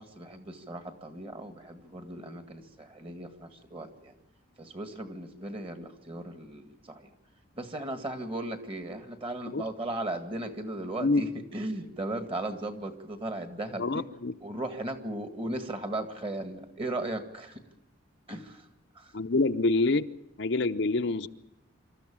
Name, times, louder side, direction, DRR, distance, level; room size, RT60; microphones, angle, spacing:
voice 1, 0.0-4.1 4.6-7.1 7.6-14.0 14.4-17.6 18.3-18.7 19.0-19.1, right 1 dB, 25° right, 7 dB, 1.9 m, -37 dB
voice 2, 13.8-14.3 19.1-20.0 20.4-21.3, left 3 dB, 60° left, 8 dB, 0.7 m, -26 dB
26.5 x 13.5 x 8.8 m, 0.88 s
head